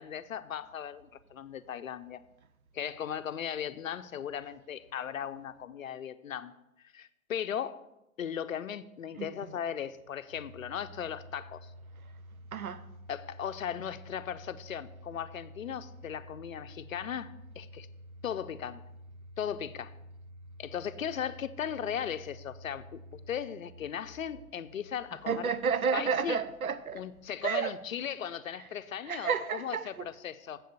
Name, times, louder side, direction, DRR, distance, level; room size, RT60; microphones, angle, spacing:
voice 1, 0.0-2.2 2.7-6.5 6.9-7.8 8.2-11.7 13.1-17.9 18.2-18.8 19.4-19.9 20.6-25.5 25.9-26.4 26.9-29.9 30.2-30.6, left 9 dB, 65° left, 0.6 m, -37 dB
Domestic sounds home sounds, 10.3-27.2, equal, 25° right, 0.8 m, -51 dB
voice 2, 12.5-12.9 25.3-27.0 27.4-27.8 28.6-28.7 29.0-30.1, right 6 dB, 75° right, 0.7 m, -31 dB
7.6 x 5.0 x 6.8 m
figure-of-eight pair, 120°, 43 cm